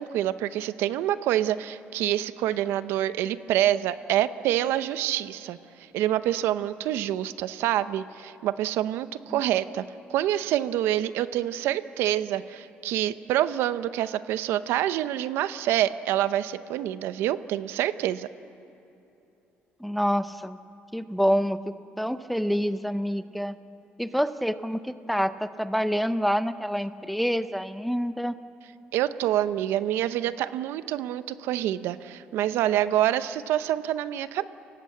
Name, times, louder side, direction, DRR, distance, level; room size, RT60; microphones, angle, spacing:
voice 1, 0.0-5.6 5.9-9.8 10.1-18.3 28.9-34.4, right 12 dB, 80° right, 13 dB, 0.7 m, -26 dB
voice 2, 19.8-20.6 20.9-23.6 24.0-28.4, equal, ahead, 11 dB, 0.5 m, -27 dB
29.0 x 18.0 x 7.9 m, 3.0 s
cardioid pair, 165°, 4 cm